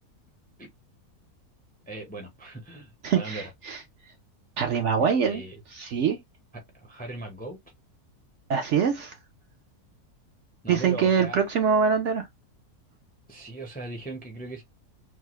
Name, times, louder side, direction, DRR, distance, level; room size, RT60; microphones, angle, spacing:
voice 1, 1.9-3.5 5.0-5.6 6.5-7.6 10.6-11.4 13.3-14.6, right 2 dB, 10° left, 0.5 m, -39 dB
voice 2, 3.0-3.8 4.6-5.4 5.8-6.2 8.5-9.2 10.7-12.3, right 6 dB, 60° right, 0.8 m, -24 dB
3.4 x 2.1 x 3.0 m
omnidirectional pair, 1.6 m